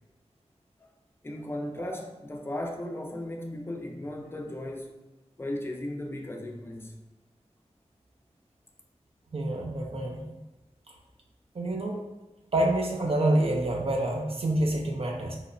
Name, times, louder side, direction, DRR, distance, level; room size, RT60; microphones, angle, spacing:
voice 1, 1.2-5.0 5.4-7.0, left 1 dB, 20° left, 2 dB, 0.3 m, -36 dB
voice 2, 9.3-10.2 11.6-12.0 12.5-15.4, right 1 dB, 55° right, 0 dB, 0.4 m, -27 dB
2.9 x 2.0 x 2.4 m, 1.0 s
wide cardioid pair, 65°, 12 cm